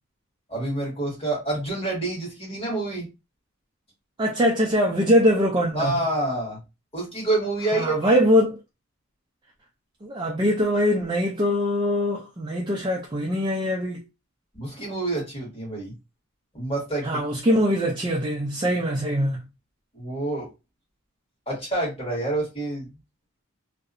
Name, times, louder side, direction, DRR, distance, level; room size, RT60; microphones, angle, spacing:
voice 1, 0.5-3.1 5.7-6.6 6.9-8.1 14.5-15.9 16.5-17.6 19.9-20.5 21.5-22.9, right 2 dB, 30° left, 1.5 m, -28 dB
voice 2, 4.2-5.9 7.7-8.6 10.0-14.0 17.0-19.4, equal, 20° right, 0.4 m, -22 dB
2.7 x 2.2 x 2.4 m
head